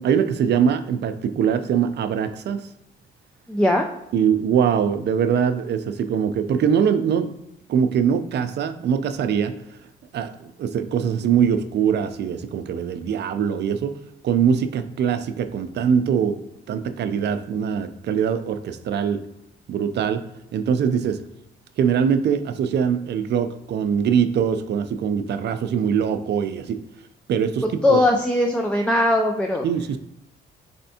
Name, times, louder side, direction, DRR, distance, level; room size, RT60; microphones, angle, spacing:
voice 1, 0.0-2.6 4.1-7.3 7.7-9.5 10.1-13.9 14.2-16.4 16.7-19.2 19.7-20.2 20.5-21.2 21.8-26.8 27.3-28.0 29.6-30.0, right 7 dB, 60° right, 9 dB, 0.4 m, -22 dB
voice 2, 3.5-3.9 27.6-29.6, left 1 dB, 5° left, 3 dB, 0.3 m, -20 dB
4.2 x 3.3 x 2.7 m, 0.85 s
cardioid pair, 90°, 20 cm